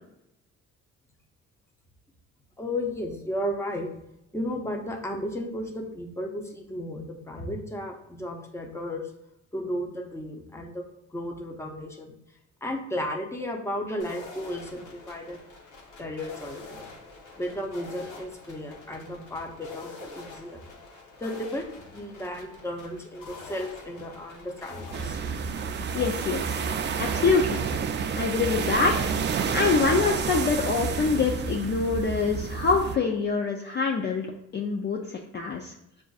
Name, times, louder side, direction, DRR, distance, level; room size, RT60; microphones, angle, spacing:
voice 1, 2.6-3.9 4.3-9.0 9.5-10.8 11.1-12.1 12.6-15.4 16.0-16.8 17.4-20.7 21.2-25.2, left 1 dB, 10° left, 1 dB, 0.8 m, -34 dB
sound 1, 14.0-27.7, left 3 dB, 85° left, 1.1 m, -46 dB
sound 2, 24.9-33.0, right 6 dB, 35° right, 0.4 m, -29 dB
voice 2, 25.9-26.6 27.0-27.6 28.1-28.9 29.5-34.3 34.5-35.7, left 4 dB, 35° left, 1 dB, 0.5 m, -25 dB
7.1 x 2.5 x 2.4 m, 0.83 s
cardioid pair, 90°, 30 cm